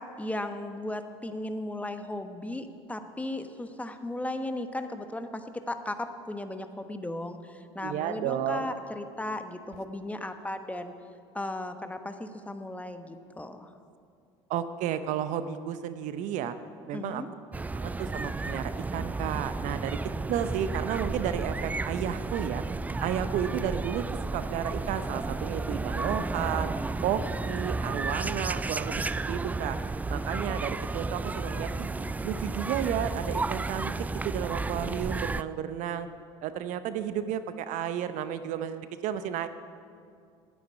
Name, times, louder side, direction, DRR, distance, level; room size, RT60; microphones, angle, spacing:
voice 1, 0.0-10.9 11.3-13.7 16.9-17.3, left 1 dB, 10° left, 8 dB, 1.1 m, -36 dB
voice 2, 7.8-8.7 14.5-16.5 16.9-17.2 17.7-20.0 20.3-22.6 23.0-26.7 27.0-29.8 30.1-31.9 32.2-33.9 34.2-36.1 36.4-39.5, right 9 dB, 55° right, 11 dB, 0.7 m, -32 dB
sound 1, 17.5-35.4, right 3 dB, 10° right, 0.3 m, -32 dB
10.5 x 9.6 x 9.1 m, 2.3 s
hypercardioid pair, 70°, 15 cm